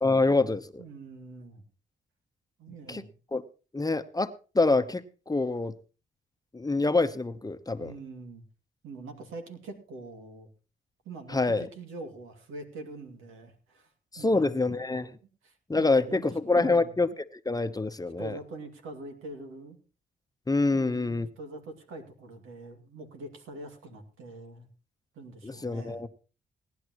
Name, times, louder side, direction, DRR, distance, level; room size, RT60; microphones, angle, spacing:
voice 1, 0.0-0.8 2.9-3.0 3.3-3.4 3.7-4.3 4.5-5.7 6.5-7.9 11.3-11.6 14.1-15.1 15.7-17.1 17.4-18.4 20.5-21.3 25.4-26.1, left 3 dB, 20° left, 0.9 m, -26 dB
voice 2, 0.8-1.6 2.6-3.1 7.8-8.4 8.8-10.5 11.0-13.9 14.2-14.7 15.4-17.0 18.2-19.8 20.7-24.7 25.1-26.1, right 2 dB, 90° right, 2.5 m, -44 dB
18.5 x 10.5 x 3.0 m
cardioid pair, 60°, 20 cm